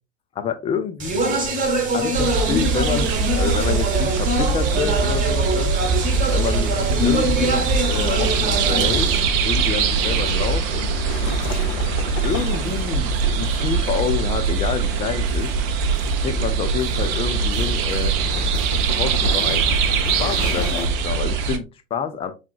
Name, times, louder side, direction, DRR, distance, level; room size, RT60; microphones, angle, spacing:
voice 1, 0.4-1.4 1.9-5.7 6.3-6.8 7.0-10.9 11.7-11.8 12.2-15.5 16.2-18.2 18.9-22.3, left 7 dB, 15° left, 0.4 m, -28 dB
Speech, 1.0-9.2, right 1 dB, 20° right, 1.1 m, -24 dB
sound 1, 2.1-21.6, right 5 dB, 40° right, 0.6 m, -22 dB
sound 2, 7.0-20.9, left 7 dB, 35° left, 0.8 m, -35 dB
4.7 x 3.6 x 2.3 m
figure-of-eight pair, 80°, 36 cm